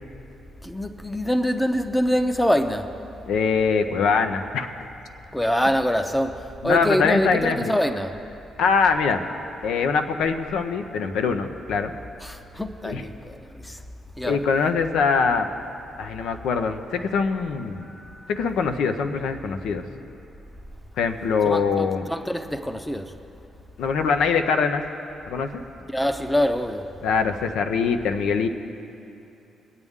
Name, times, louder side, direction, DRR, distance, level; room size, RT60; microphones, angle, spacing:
voice 1, 0.6-3.1 5.3-8.3 12.2-13.8 14.2-14.4 17.8-18.3 21.4-23.2 25.9-27.0, equal, 5° left, 0.7 m, -25 dB
voice 2, 3.3-4.7 6.6-7.7 8.6-9.2 9.6-11.9 12.8-13.0 14.2-15.5 16.0-17.9 18.3-19.8 21.0-22.0 23.8-24.8 25.3-25.5 27.0-28.5, left 5 dB, 80° left, 0.7 m, -23 dB
22.0 x 8.1 x 3.6 m
cardioid pair, 90°, 0 cm